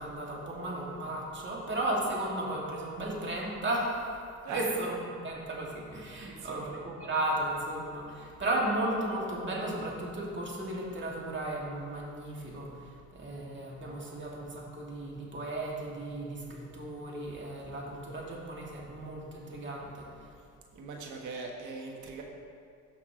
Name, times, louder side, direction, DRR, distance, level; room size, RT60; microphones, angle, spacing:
voice 1, 0.0-4.1 4.5-5.0 5.2-12.7 13.1-20.1, right 1 dB, 40° right, -4 dB, 2.5 m, -34 dB
voice 2, 6.2-6.7 20.7-22.2, right 4 dB, 80° right, 0 dB, 1.5 m, -40 dB
17.0 x 5.8 x 3.2 m, 2.3 s
cardioid pair, 90°, 30 cm